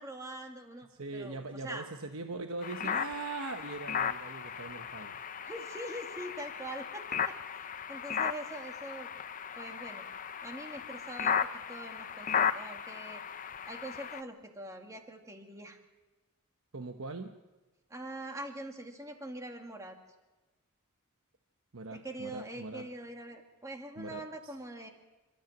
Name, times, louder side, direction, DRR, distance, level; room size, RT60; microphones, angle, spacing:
voice 1, 0.0-1.9 2.8-3.0 5.4-9.1 9.6-10.1 10.4-11.4 11.7-13.2 13.7-15.8 17.9-20.0 21.9-24.9, right 1 dB, 15° right, 3 dB, 2.1 m, -43 dB
voice 2, 0.9-5.2 16.7-17.4 21.7-22.9 24.0-24.5, right 3 dB, 65° right, 5 dB, 1.0 m, -41 dB
sound 1, 2.6-14.2, left 7 dB, 35° left, 0.6 m, -36 dB
28.0 x 13.5 x 7.4 m, 1.2 s
head